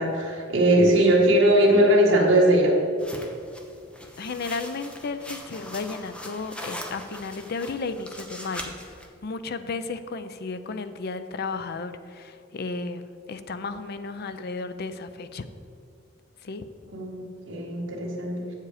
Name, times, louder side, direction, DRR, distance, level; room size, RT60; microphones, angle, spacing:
voice 1, 0.0-2.8 16.9-18.5, right 1 dB, 70° right, -4 dB, 1.8 m, -20 dB
sound 1, 3.0-9.1, equal, 5° left, 0.7 m, -41 dB
voice 2, 4.2-15.4 16.4-16.6, left 4 dB, 50° left, 11 dB, 0.5 m, -34 dB
8.2 x 7.4 x 4.9 m, 2.4 s
head